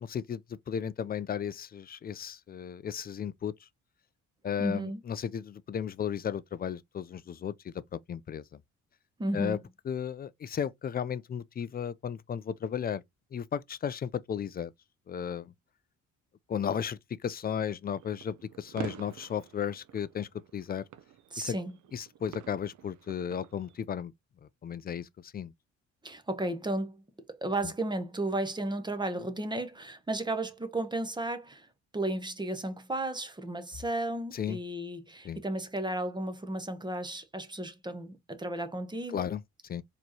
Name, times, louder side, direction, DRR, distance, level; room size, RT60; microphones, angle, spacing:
voice 1, 0.0-3.5 4.4-7.8 8.1-8.4 9.3-9.6 9.9-13.0 13.3-14.7 15.1-15.5 16.5-20.8 21.4-21.6 21.9-24.1 24.4-25.5 34.3-34.6 35.2-35.4 39.1-39.8, left 8 dB, 30° left, 0.4 m, -34 dB
voice 2, 4.6-5.0 9.2-9.6 21.3-21.8 26.0-27.0 27.3-31.7 31.9-39.3, right 1 dB, 15° right, 0.8 m, -34 dB
sound 1, 17.9-23.8, right 11 dB, 80° right, 0.6 m, -47 dB
4.3 x 3.1 x 2.8 m
cardioid pair, 90°, 30 cm